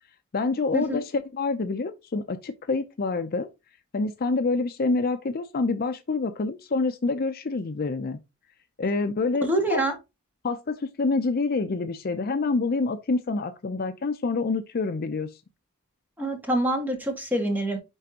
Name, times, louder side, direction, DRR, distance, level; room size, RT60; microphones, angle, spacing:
voice 1, 0.3-3.5 3.9-8.2 8.8-9.8 10.4-15.3, left 3 dB, 45° left, 0.5 m, -27 dB
voice 2, 9.4-9.9 16.2-17.8, right 1 dB, 10° right, 1.8 m, -25 dB
10.0 x 3.4 x 2.9 m
head